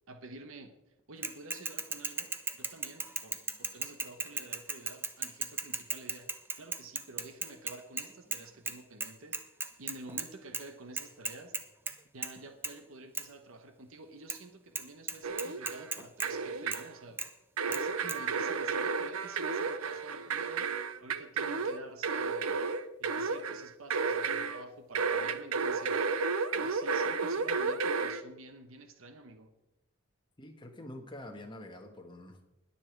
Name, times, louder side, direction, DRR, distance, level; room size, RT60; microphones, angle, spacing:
voice 1, 0.1-0.7 1.1-6.3 6.6-9.4 9.8-11.6 12.1-17.3 17.7-20.7 21.0-22.6 23.0-26.0 26.5-29.5, right 2 dB, 70° right, 7 dB, 1.1 m, -50 dB
Bicycle / Mechanisms, 1.2-8.4 8.7-8.8 9.0-10.3 10.5-10.6 11.0-11.9 12.2-12.4 12.6-12.7 13.1-13.2 14.3-14.4 14.7-14.8 15.1-16.3 16.7-16.8 17.2-17.3 17.7-17.8 18.1-18.2, right 4 dB, 10° right, 0.6 m, -35 dB
sound 1, 15.2-15.9 16.2-16.9 17.6-24.6 24.9-28.2, right 4 dB, 90° right, 0.8 m, -32 dB
voice 2, 30.4-32.4, left 1 dB, 20° left, 3 dB, 1.6 m, -46 dB
20.5 x 7.1 x 4.6 m, 0.89 s
head